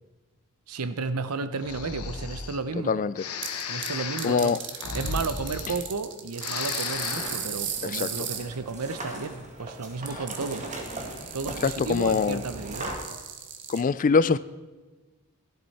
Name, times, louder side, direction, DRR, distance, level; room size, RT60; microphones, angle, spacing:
voice 1, 0.7-3.0 3.7-4.6 4.9-10.7 11.3-12.9, right 4 dB, 90° right, 12 dB, 0.8 m, -33 dB
Breathing, 1.6-2.6 3.2-6.1 6.3-7.5, left 5 dB, 80° left, 1.0 m, -34 dB
sound 1, 3.4-3.9 4.2-8.4 10.1-13.8, right 9 dB, 55° right, 1.4 m, -36 dB
voice 2, 4.2-4.6 7.9-8.1 11.6-12.4 13.7-14.4, left 5 dB, 35° left, 17 dB, 0.4 m, -23 dB
sound 2, 6.4-13.0, right 2 dB, 35° right, 2.0 m, -39 dB
15.5 x 11.5 x 4.2 m, 1.3 s
head